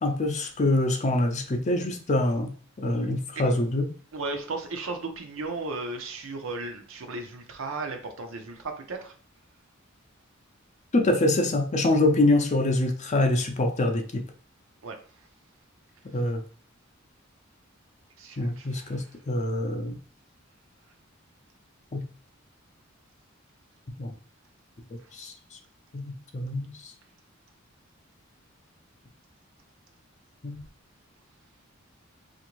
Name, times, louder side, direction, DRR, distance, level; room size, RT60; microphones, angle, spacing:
voice 1, 0.0-2.5 2.8-3.8 10.9-14.2 16.1-16.4 18.4-20.0 21.9-22.0 24.0-24.1 25.2-25.3 25.9-26.7 30.4-30.6, left 2 dB, 35° left, 4 dB, 0.5 m, -25 dB
voice 2, 4.1-9.1 14.8-15.0 18.2-19.1, right 3 dB, 70° right, 5 dB, 0.6 m, -35 dB
3.4 x 2.5 x 3.0 m, 0.41 s
head